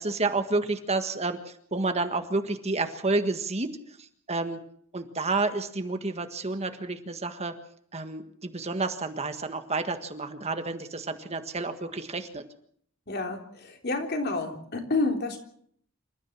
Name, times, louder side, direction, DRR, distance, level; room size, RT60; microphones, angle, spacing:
voice 1, 0.0-3.7 4.3-4.6 4.9-7.5 7.9-12.4, right 3 dB, 30° right, 8 dB, 1.6 m, -30 dB
voice 2, 13.1-15.4, left 3 dB, 50° left, 3 dB, 3.5 m, -29 dB
27.5 x 14.0 x 7.3 m, 0.65 s
head